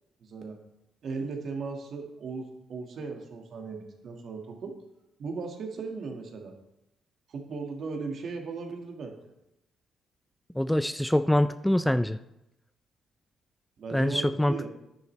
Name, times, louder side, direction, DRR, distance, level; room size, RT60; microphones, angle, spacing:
voice 1, 0.2-0.6 1.0-4.8 5.2-6.5 7.3-9.2 13.8-14.7, right 4 dB, 60° right, 3 dB, 1.6 m, -37 dB
voice 2, 10.6-12.2 13.9-14.7, left 1 dB, 5° left, 12 dB, 0.3 m, -25 dB
9.9 x 9.4 x 3.2 m, 0.88 s
cardioid pair, 80°, 0 cm